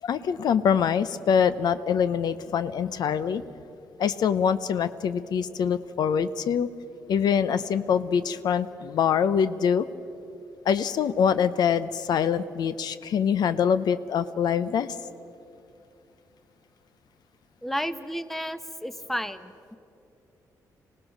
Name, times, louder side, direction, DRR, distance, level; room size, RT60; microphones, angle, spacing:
voice 1, 0.0-3.4 4.0-6.7 7.1-9.9 10.6-15.0, left 7 dB, 70° left, 13 dB, 0.7 m, -24 dB
voice 2, 17.6-19.8, equal, 5° left, 12 dB, 0.8 m, -32 dB
25.5 x 17.5 x 6.5 m, 2.7 s
cardioid pair, 100°, 7 cm